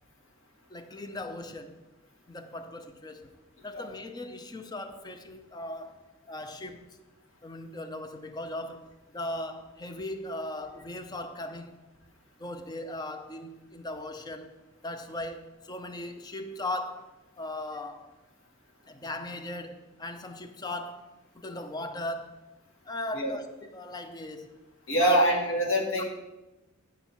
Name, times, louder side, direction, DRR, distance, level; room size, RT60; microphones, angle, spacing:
voice 1, 0.7-1.8 2.3-3.3 3.6-6.0 6.3-7.0 7.4-8.9 9.1-11.8 12.4-14.5 14.8-17.1 17.4-18.1 18.9-22.4 22.9-24.5 25.0-25.2 26.0-26.1, left 1 dB, 20° left, 0.5 m, -38 dB
voice 2, 24.9-26.0, right 1 dB, 60° left, 1.9 m, -24 dB
9.7 x 4.4 x 7.0 m
head